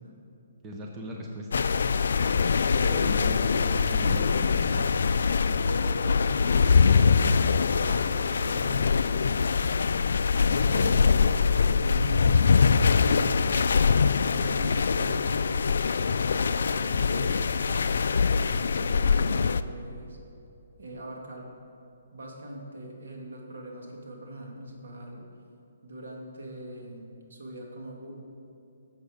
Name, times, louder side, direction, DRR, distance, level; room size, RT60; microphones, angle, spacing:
voice 1, 0.6-1.7 3.1-4.9, equal, 15° right, -1 dB, 0.7 m, -38 dB
sound 1, 1.5-19.6, left 5 dB, 70° left, 0.3 m, -23 dB
voice 2, 2.8-3.4 5.4-9.4 10.3-13.7 13.9-15.7 16.2-17.9 18.4-20.2 20.8-21.5 22.1-25.3 25.8-28.1, right 1 dB, 80° right, 0 dB, 2.3 m, -41 dB
11.0 x 7.2 x 5.1 m, 2.8 s
hypercardioid pair, 170°, 0 cm